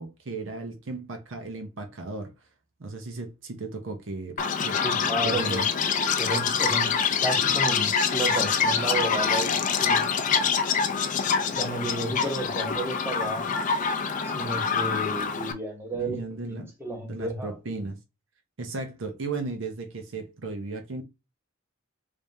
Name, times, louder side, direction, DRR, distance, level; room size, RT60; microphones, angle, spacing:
voice 1, 0.0-2.3 2.8-4.8 5.2-5.6 15.9-16.7 17.1-18.0 18.6-21.0, right 3 dB, 60° right, 0.7 m, -35 dB
Chirp tweet, 4.4-15.5, left 6 dB, 35° left, 0.4 m, -25 dB
voice 2, 4.7-5.6 6.2-6.9 7.2-10.1 11.1-13.5 14.2-16.2 16.5-17.5, right 1 dB, 10° right, 0.9 m, -32 dB
3.4 x 3.3 x 2.7 m
head